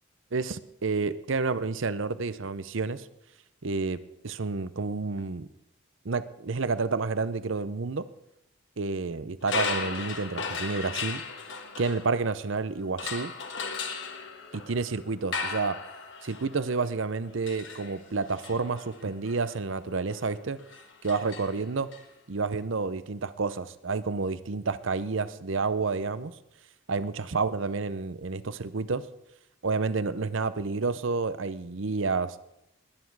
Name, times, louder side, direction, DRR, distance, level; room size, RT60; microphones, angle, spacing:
voice 1, 0.3-3.1 3.6-4.0 4.2-5.5 6.0-8.0 8.8-11.2 11.8-13.3 14.5-15.8 16.2-20.6 21.0-21.9 22.3-26.3 26.9-29.0 29.6-32.4, right 4 dB, 65° right, 14 dB, 0.7 m, -30 dB
sound 1, 9.4-12.5 13.0-22.0, left 4 dB, 55° left, 1.5 m, -37 dB
20.5 x 9.5 x 4.7 m, 0.84 s
head